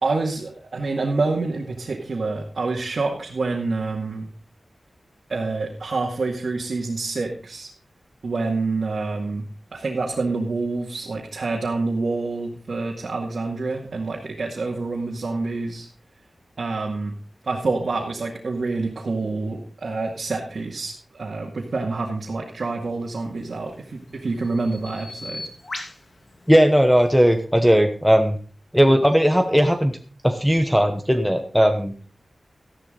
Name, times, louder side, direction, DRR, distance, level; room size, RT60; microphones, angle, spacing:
voice 1, 0.0-4.3 5.3-7.7 8.2-9.4 9.7-15.9 16.6-17.2 17.4-25.5, right 3 dB, 70° right, -2 dB, 2.2 m, -27 dB
Bird vocalization bird call bird song, 23.2-27.5, left 2 dB, 55° left, 2.9 m, -40 dB
voice 2, 26.5-28.4 28.7-30.0 30.2-31.9, equal, ahead, 5 dB, 1.1 m, -17 dB
13.5 x 11.0 x 4.0 m, 0.39 s
wide cardioid pair, 70°, 0 cm